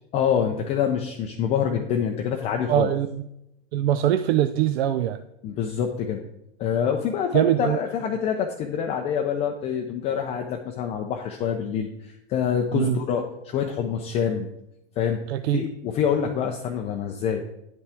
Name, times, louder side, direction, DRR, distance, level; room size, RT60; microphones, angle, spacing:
voice 1, 0.1-2.9 5.4-6.2 6.6-14.5 15.0-15.2 15.5-17.4, left 8 dB, 20° left, 3 dB, 0.4 m, -26 dB
voice 2, 2.7-3.2 3.7-5.2 7.3-7.8 12.7-13.0 15.3-15.6, right 12 dB, 65° right, 11 dB, 0.5 m, -22 dB
9.7 x 5.5 x 3.5 m, 0.85 s
hypercardioid pair, 135°, 34 cm